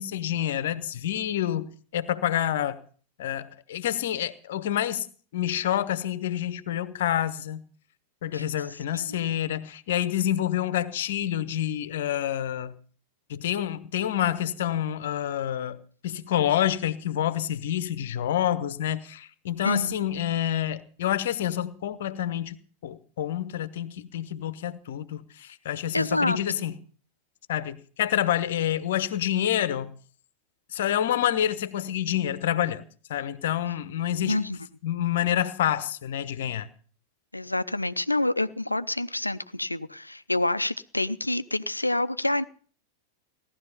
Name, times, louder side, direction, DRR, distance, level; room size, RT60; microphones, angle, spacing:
voice 1, 0.0-1.7 1.9-2.8 3.2-5.1 5.3-7.6 8.2-12.8 13.3-22.6 22.8-26.8 27.5-29.9 30.7-32.8 33.1-34.4 34.8-36.7, left 11 dB, 55° left, 1.1 m, -28 dB
voice 2, 19.6-20.3 25.9-26.4 34.2-34.6 37.3-42.4, left 1 dB, 85° left, 0.6 m, -28 dB
17.5 x 12.0 x 5.6 m
figure-of-eight pair, 90°, 0 cm